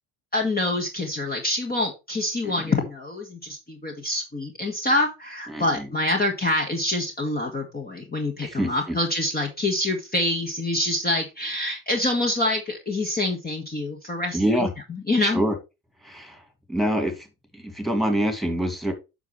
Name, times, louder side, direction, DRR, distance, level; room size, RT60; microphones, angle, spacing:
voice 1, 0.3-14.4 15.1-15.4, left 1 dB, 20° left, 2 dB, 1.8 m, -26 dB
voice 2, 2.4-2.8 5.5-5.9 8.4-9.0 14.3-14.7 15.2-15.5 16.0-16.4 16.7-17.3 17.5-18.9, equal, ahead, 6 dB, 2.4 m, -26 dB
9.1 x 5.9 x 3.3 m, 0.26 s
hypercardioid pair, 70°, 42 cm